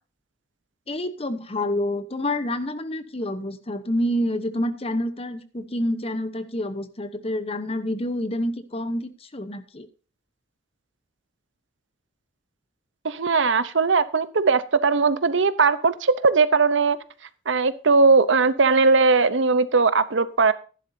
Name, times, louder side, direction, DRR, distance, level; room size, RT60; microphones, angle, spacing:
voice 1, 0.9-9.9, left 1 dB, 30° left, 11 dB, 0.9 m, -28 dB
voice 2, 13.0-17.0 17.5-20.5, right 4 dB, 65° right, 15 dB, 0.8 m, -19 dB
14.5 x 11.0 x 2.7 m, 0.37 s
head